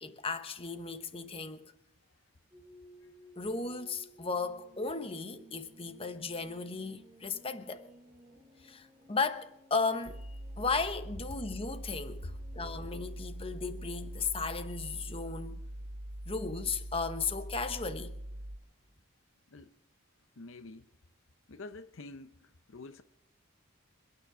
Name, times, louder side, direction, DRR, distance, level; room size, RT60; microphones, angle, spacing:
voice 1, 0.0-1.7 3.4-7.9 8.6-15.6 16.3-18.1, left 4 dB, 25° left, 1.0 m, -35 dB
sound 1, 2.5-15.0, equal, 10° right, 3.9 m, -59 dB
sound 2, 10.0-18.6, right 1 dB, 80° right, 1.5 m, -43 dB
voice 2, 20.4-20.8 21.5-22.3 22.7-23.0, left 3 dB, 65° left, 0.7 m, -47 dB
28.0 x 9.9 x 4.9 m
head